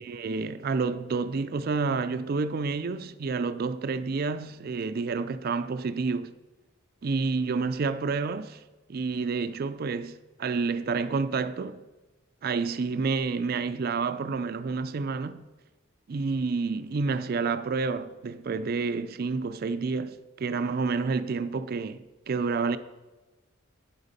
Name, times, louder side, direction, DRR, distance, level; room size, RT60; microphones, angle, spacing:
voice 1, 0.0-6.3 7.0-8.6 8.9-11.8 12.4-15.4 16.1-22.8, right 4 dB, 45° right, 0.4 m, -29 dB
9.3 x 8.1 x 5.2 m
head